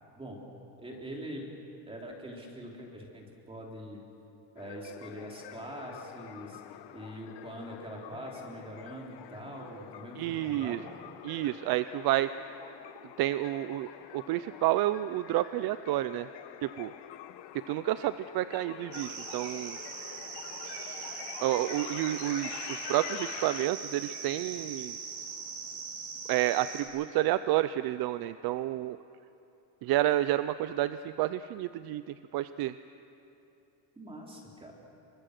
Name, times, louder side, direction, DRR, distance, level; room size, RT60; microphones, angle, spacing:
voice 1, 0.8-1.5 1.9-4.0 4.5-10.9 33.9-34.7, equal, 10° right, -1 dB, 3.3 m, -43 dB
sound 1, 4.6-23.7, left 13 dB, 55° left, 1.0 m, -46 dB
voice 2, 10.2-10.8 11.2-12.3 13.2-13.9 14.1-16.3 16.6-16.9 17.7-19.8 21.4-25.0 26.3-29.0 29.8-32.7, right 14 dB, 50° right, 13 dB, 0.5 m, -30 dB
sound 2, 18.9-26.8, right 5 dB, 70° right, 4.4 m, -41 dB
28.5 x 24.0 x 6.6 m, 2.9 s
cardioid pair, 175°, 49 cm